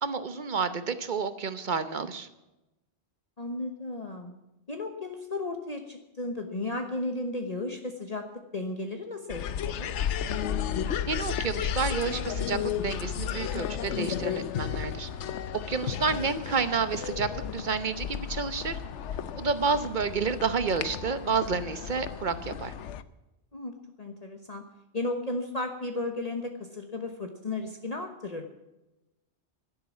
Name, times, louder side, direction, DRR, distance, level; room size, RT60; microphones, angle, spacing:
voice 1, 0.0-2.3 11.1-15.1 15.5-18.8 19.3-22.7, right 5 dB, 45° right, 12 dB, 1.0 m, -30 dB
voice 2, 3.4-4.3 4.7-8.3 8.5-10.1 16.0-16.3 23.5-24.7 24.9-28.5, left 2 dB, 35° left, 4 dB, 1.2 m, -34 dB
sound 1, 9.3-23.0, left 9 dB, 85° left, 1.0 m, -33 dB
12.0 x 10.5 x 7.3 m, 0.97 s
omnidirectional pair, 1.2 m